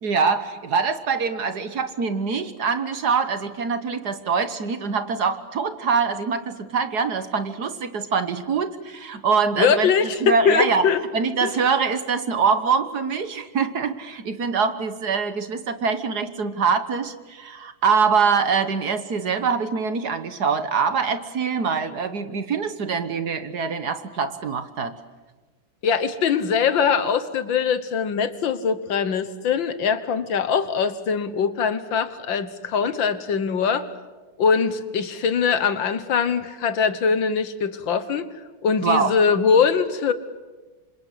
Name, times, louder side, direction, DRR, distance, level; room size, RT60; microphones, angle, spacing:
voice 1, 0.0-9.9 10.2-25.0 38.8-39.1, right 5 dB, 55° right, 11 dB, 1.6 m, -24 dB
voice 2, 9.6-11.0 11.4-11.6 25.8-33.9 34.4-38.3 38.6-40.1, left 6 dB, 65° left, 13 dB, 1.9 m, -22 dB
27.5 x 26.0 x 8.3 m, 1.3 s
omnidirectional pair, 2.3 m